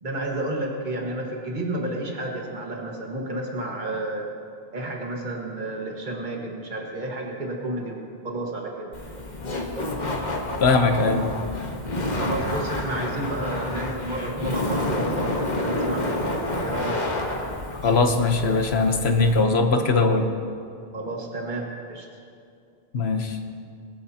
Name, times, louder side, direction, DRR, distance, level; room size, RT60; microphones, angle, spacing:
voice 1, 0.0-4.3 4.7-8.9 12.2-16.3 16.6-17.2 20.9-22.1, right 1 dB, 45° right, -1 dB, 1.8 m, -31 dB
Laughter, 8.9-19.4, left 1 dB, 45° left, 1.4 m, -29 dB
voice 2, 10.6-11.3 17.8-20.3 22.9-23.4, left 3 dB, 75° left, 5 dB, 1.3 m, -20 dB
21.5 x 13.5 x 2.9 m, 2.4 s
omnidirectional pair, 1.1 m